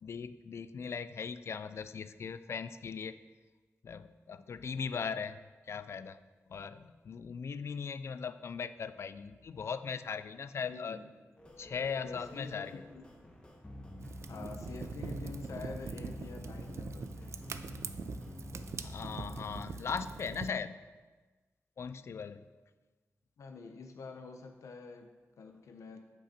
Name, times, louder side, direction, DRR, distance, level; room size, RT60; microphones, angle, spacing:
voice 1, 0.0-3.2 3.8-5.4 5.7-6.2 6.5-11.0 11.6-12.8 18.8-20.8 21.8-22.5, left 6 dB, 60° left, 13 dB, 0.3 m, -39 dB
voice 2, 10.6-11.1 12.0-13.1 14.3-17.4 23.4-26.0, left 4 dB, 80° left, 5 dB, 0.7 m, -47 dB
sound 1, 11.4-19.6, left 1 dB, 20° left, 1.1 m, -47 dB
Fire, 14.0-20.5, right 5 dB, 60° right, 0.4 m, -43 dB
7.8 x 5.4 x 4.3 m, 1.3 s
wide cardioid pair, 110°, 5 cm